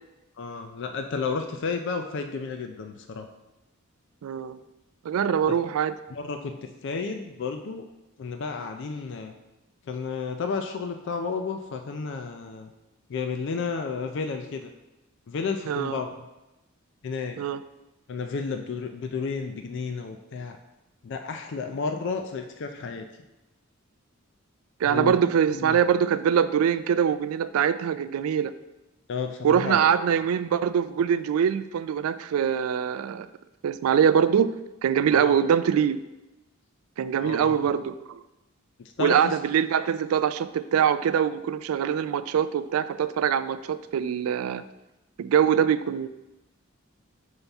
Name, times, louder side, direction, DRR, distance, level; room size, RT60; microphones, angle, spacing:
voice 1, 0.4-3.3 5.5-5.6 6.1-7.8 8.2-9.3 9.9-12.7 13.1-14.7 15.3-16.1 17.0-17.4 18.1-20.6 21.0-23.1 24.8-25.2 25.5-25.8 29.1-29.9 35.1-35.4 37.2-37.6 38.8-39.3, left 5 dB, 60° left, 6 dB, 0.4 m, -32 dB
voice 2, 4.2-4.6 5.0-5.9 15.7-16.0 17.4-17.6 24.8-28.5 29.4-33.3 33.6-34.5 34.8-36.0 37.0-38.2 39.0-44.7 45.2-46.1, right 8 dB, 80° right, 13 dB, 0.3 m, -23 dB
5.6 x 5.4 x 3.4 m, 0.99 s
head